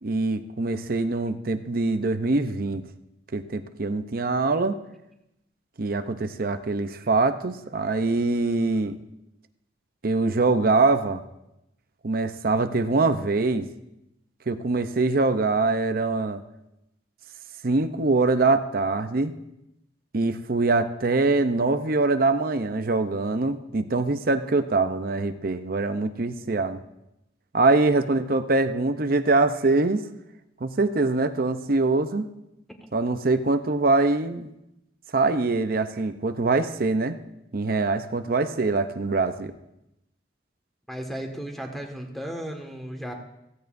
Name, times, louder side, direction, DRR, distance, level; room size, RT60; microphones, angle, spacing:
voice 1, 0.0-2.8 3.3-4.8 5.8-9.0 10.0-11.2 12.0-13.7 14.5-16.4 17.6-19.3 20.1-26.8 27.5-30.0 30.6-32.3 32.9-34.5 35.1-37.2 37.5-39.5, right 3 dB, 50° right, 9 dB, 0.7 m, -23 dB
voice 2, 40.9-43.1, equal, ahead, 2 dB, 1.7 m, -35 dB
16.0 x 16.0 x 2.6 m, 0.87 s
head